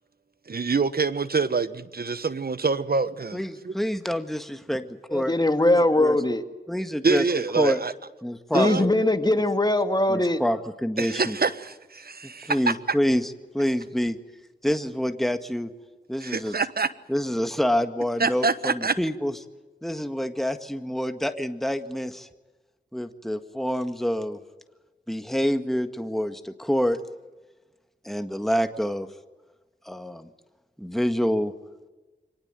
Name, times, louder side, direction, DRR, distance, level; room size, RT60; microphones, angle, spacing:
voice 1, 0.5-3.7 7.0-7.9 8.5-8.8 11.0-13.0 16.2-16.9 18.2-19.0, right 4 dB, 55° right, 1.2 m, -26 dB
voice 2, 3.3-6.1 6.7-7.2 7.6-7.8 8.2-8.9 10.1-11.4 12.5-14.2 14.6-15.7 16.1-16.5 17.1-19.3 19.8-22.3 22.9-24.4 25.1-27.0 28.0-29.1 29.8-30.3 30.8-31.5, equal, ahead, 1.8 m, -27 dB
voice 3, 5.1-6.4 8.5-10.4, left 1 dB, 20° left, 2.3 m, -21 dB
24.5 x 18.5 x 9.2 m
cardioid pair, 55°, 19 cm